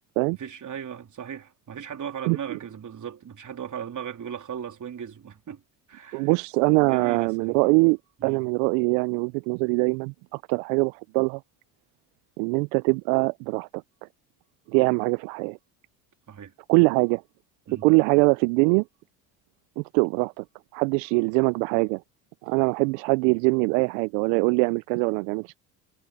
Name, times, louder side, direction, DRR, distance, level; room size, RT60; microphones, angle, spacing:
voice 1, 0.4-5.6 5.9-6.3 6.8-7.6 8.2-8.4 16.3-16.5 17.7-17.9, right 8 dB, 40° right, 3.6 m, -37 dB
voice 2, 2.3-2.6 6.1-11.4 12.4-13.8 14.7-15.6 16.7-17.2 17.8-18.8 19.8-20.4 20.7-22.0 22.4-25.6, right 32 dB, 75° right, 0.6 m, -23 dB
hypercardioid pair, 75°, 48 cm